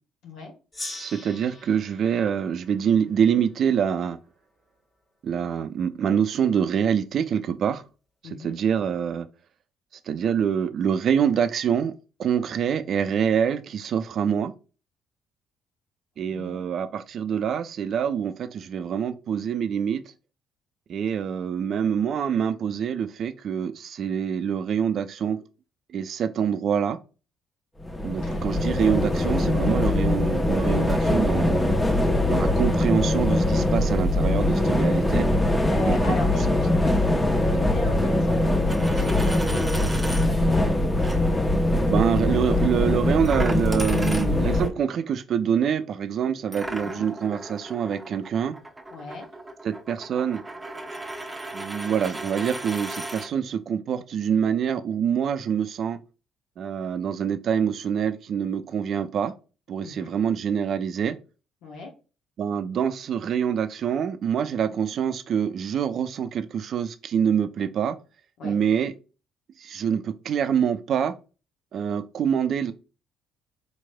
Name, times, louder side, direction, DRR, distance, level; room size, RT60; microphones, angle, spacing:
Gong, 0.7-3.9, left 1 dB, 40° left, 1.5 m, -42 dB
voice 1, 1.0-4.2 5.2-7.8 8.4-9.3 10.1-11.9 12.2-14.5 16.2-20.0 20.9-25.4 25.9-27.0 28.0-31.8 32.3-35.3 35.8-36.0 41.9-48.6 49.6-50.4 51.5-56.0 56.6-59.3 59.7-61.2 62.4-68.0 68.4-68.9 69.6-71.1 71.7-72.7, right 8 dB, 60° right, 0.4 m, -25 dB
voice 2, 8.2-8.5 16.3-16.6 28.2-28.4 35.7-40.7 46.8-47.0 48.9-49.3 59.8-60.1 61.6-61.9 68.4-68.6, left 3 dB, 70° left, 0.9 m, -38 dB
sound 1, 27.8-44.7, left 1 dB, 15° left, 0.8 m, -22 dB
Coin (dropping), 38.5-40.3 41.0-41.2 43.2-44.7 46.5-53.3, right 1 dB, 15° right, 0.8 m, -36 dB
4.4 x 3.0 x 2.2 m
hypercardioid pair, 55°, 0 cm